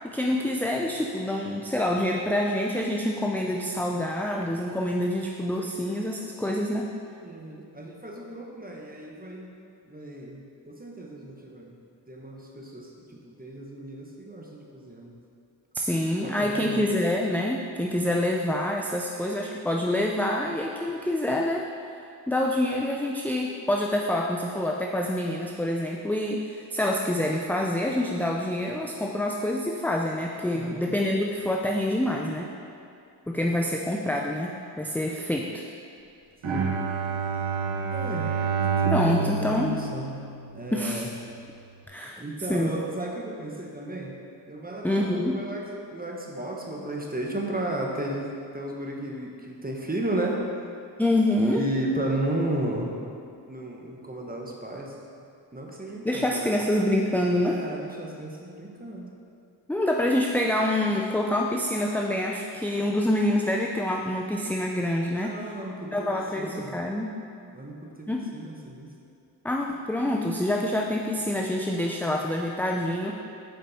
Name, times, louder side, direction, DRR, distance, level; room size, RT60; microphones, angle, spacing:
voice 1, 0.0-6.9 15.7-21.6 22.3-32.5 33.3-35.6 38.9-39.7 40.7-41.1 41.9-42.2 42.5-42.8 44.8-45.4 51.0-51.6 56.0-57.6 59.7-65.3 65.9-67.2 68.1-68.3 69.4-73.2, left 1 dB, 5° left, 0 dB, 0.5 m, -26 dB
voice 2, 7.2-9.5 9.8-11.8 12.1-15.1 16.2-16.8 30.5-30.9 36.4-36.7 37.9-38.6 39.0-40.2 40.5-41.1 42.2-44.2 44.5-50.4 51.4-53.1 53.5-55.0 55.5-56.6 57.4-59.1 65.1-66.7 67.4-68.9, right 1 dB, 20° right, -1 dB, 1.3 m, -34 dB
Bowed string instrument, 36.4-40.8, right 5 dB, 90° right, 0.8 m, -28 dB
7.7 x 5.2 x 4.2 m, 2.5 s
cardioid pair, 45°, 45 cm